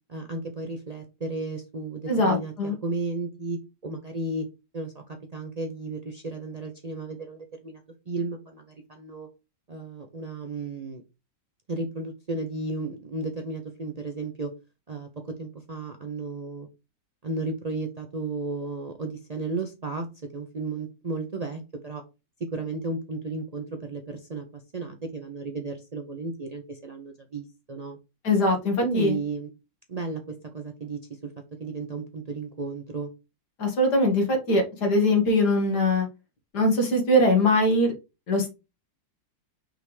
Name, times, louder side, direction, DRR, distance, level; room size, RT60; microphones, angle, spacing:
voice 1, 0.1-2.5 2.8-4.5 4.7-5.0 5.3-7.8 8.1-9.3 9.7-11.0 11.7-14.5 14.9-16.7 17.2-20.1 20.3-22.0 22.4-28.0 28.8-29.5 29.9-31.3 31.6-33.1, right 3 dB, 65° right, 4 dB, 0.4 m, -34 dB
voice 2, 2.1-2.7 28.2-29.2 33.6-36.1 36.5-37.9 38.3-38.5, left 1 dB, 60° left, 3 dB, 2.3 m, -22 dB
5.8 x 3.5 x 4.7 m, 0.27 s
omnidirectional pair, 2.0 m